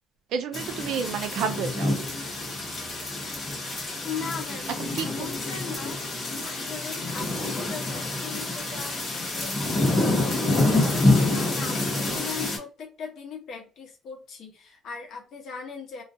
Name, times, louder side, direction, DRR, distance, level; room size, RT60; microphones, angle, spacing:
voice 1, 0.3-2.0 4.8-5.3, right 7 dB, 65° right, 8 dB, 0.4 m, -30 dB
sound 1, 0.5-12.6, left 2 dB, 25° left, 0.9 m, -27 dB
voice 2, 4.0-6.0 6.4-9.7 10.2-16.0, left 6 dB, 50° left, 2 dB, 0.9 m, -39 dB
2.3 x 2.2 x 2.6 m, 0.34 s
cardioid pair, 160°, 0 cm